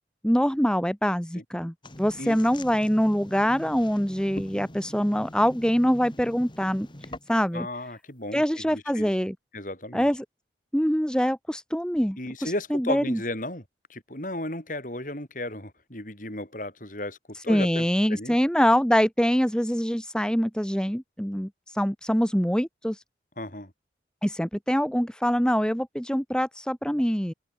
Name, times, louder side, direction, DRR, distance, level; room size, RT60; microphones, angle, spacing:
voice 1, 0.2-6.9 7.3-7.7 8.3-9.3 9.9-10.2 10.7-13.2 17.5-23.0 24.2-27.3, equal, 5° left, 2.4 m, -24 dB
sound 1, 1.8-7.6, left 1 dB, 25° left, 2.7 m, -43 dB
voice 2, 7.5-9.1 9.5-10.1 12.2-13.6 13.9-18.4 23.4-23.7, left 1 dB, 45° left, 7.0 m, -34 dB
open air
head